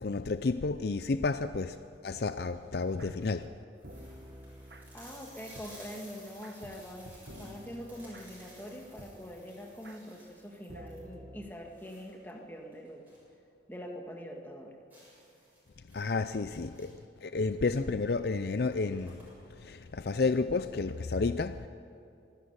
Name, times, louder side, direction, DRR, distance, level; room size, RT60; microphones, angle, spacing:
voice 1, 0.0-3.5 15.9-21.7, left 3 dB, 60° left, 11 dB, 0.5 m, -31 dB
sound 1, 2.1-2.4 3.0-3.1 3.4-3.5 3.8-13.3 13.7-13.8 14.1-14.2 14.9-17.1 18.1-18.2 18.5-19.6, right 1 dB, 10° right, 7.4 m, -56 dB
sound 2, 2.6-11.5, equal, 60° right, 1.5 m, -51 dB
voice 2, 4.9-13.1 13.7-14.8, equal, 10° left, 1 dB, 2.0 m, -44 dB
25.0 x 11.5 x 9.7 m, 2.5 s
head